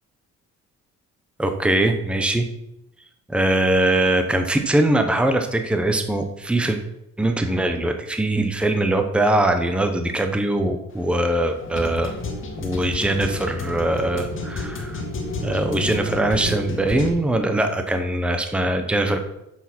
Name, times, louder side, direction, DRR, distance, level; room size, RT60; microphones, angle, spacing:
voice 1, 1.4-2.5 3.3-6.8 7.2-12.1 12.6-15.0 15.4-19.2, right 1 dB, 5° right, 6 dB, 0.9 m, -21 dB
sound 1, 10.9-17.1, left 3 dB, 45° left, 2.0 m, -31 dB
7.8 x 7.4 x 6.1 m, 0.87 s
cardioid pair, 155°, 29 cm